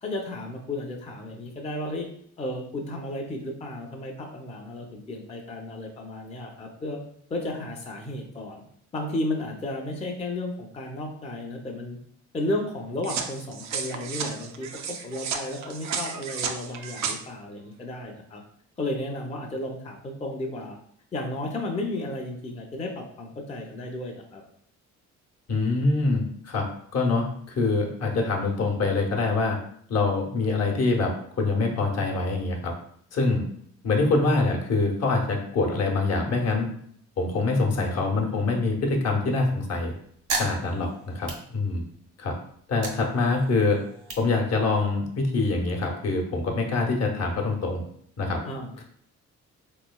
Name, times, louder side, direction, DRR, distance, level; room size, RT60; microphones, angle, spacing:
voice 1, 0.0-2.1 2.4-7.0 7.3-8.6 8.9-12.0 12.3-18.4 18.8-20.8 21.1-24.4 48.4-48.8, left 1 dB, 20° left, 1 dB, 0.5 m, -33 dB
sound 1, 13.0-17.2, right 6 dB, 65° right, 0.5 m, -33 dB
voice 2, 25.5-26.7 26.9-29.6 29.9-32.7 33.1-33.4 33.8-36.7 37.2-39.9 40.3-41.8 42.2-42.4 42.7-43.8 44.2-47.8 48.2-48.4, left 3 dB, 55° left, 1 dB, 0.9 m, -25 dB
sound 2, 40.0-42.1 42.5-45.1, right 3 dB, 85° right, 1.3 m, -36 dB
3.9 x 3.1 x 2.2 m, 0.65 s
cardioid pair, 90°, 30 cm